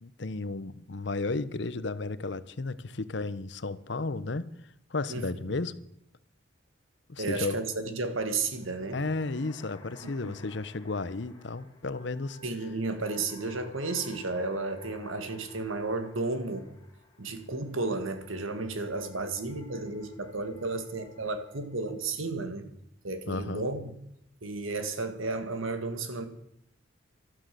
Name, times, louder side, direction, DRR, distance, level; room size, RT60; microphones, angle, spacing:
voice 1, 0.0-4.5 4.9-5.7 7.1-7.6 8.9-12.4 23.3-23.7, left 3 dB, 60° left, 0.8 m, -33 dB
voice 2, 7.2-9.0 10.2-10.3 12.4-16.7 17.2-22.7 23.0-23.9 24.4-26.3, right 3 dB, 85° right, 1.8 m, -33 dB
sound 1, 8.4-21.8, left 3 dB, 20° left, 1.9 m, -55 dB
12.0 x 12.0 x 7.6 m
head